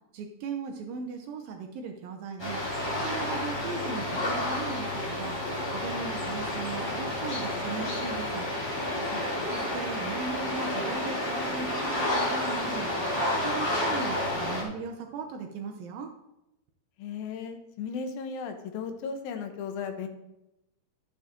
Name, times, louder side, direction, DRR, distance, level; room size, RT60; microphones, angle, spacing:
voice 1, 0.1-2.6 3.0-5.4 5.7-8.5 9.5-12.9 13.4-16.1, right 5 dB, 75° right, 3 dB, 2.3 m, -38 dB
sound 1, 2.4-14.6, left 1 dB, 10° left, 1.4 m, -30 dB
voice 2, 9.1-9.5 17.0-20.1, left 6 dB, 75° left, 6 dB, 2.5 m, -36 dB
12.0 x 7.2 x 3.7 m, 0.89 s
omnidirectional pair, 4.6 m